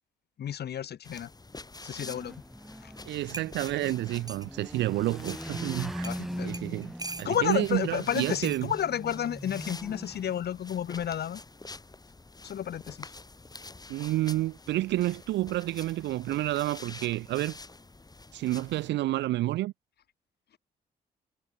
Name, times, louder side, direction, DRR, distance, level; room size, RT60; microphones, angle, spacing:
voice 1, 0.4-1.3 1.8-2.4 2.8-2.9 6.0-6.5 7.2-11.4 12.4-13.1, left 10 dB, 55° left, 1.4 m, -31 dB
sound 1, 1.0-18.9, left 3 dB, 20° left, 1.5 m, -47 dB
sound 2, 2.0-10.4, equal, ahead, 2.1 m, -41 dB
sound 3, 3.0-3.1 3.3-4.5 5.3-5.4 6.0-6.2 6.5-7.6 8.4-8.6 9.8-10.0, right 2 dB, 20° right, 2.8 m, -42 dB
voice 2, 3.0-6.1 6.4-6.9 7.2-8.7 13.9-17.6 18.3-19.7, right 16 dB, 65° right, 0.6 m, -29 dB
hypercardioid pair, 40°, 20 cm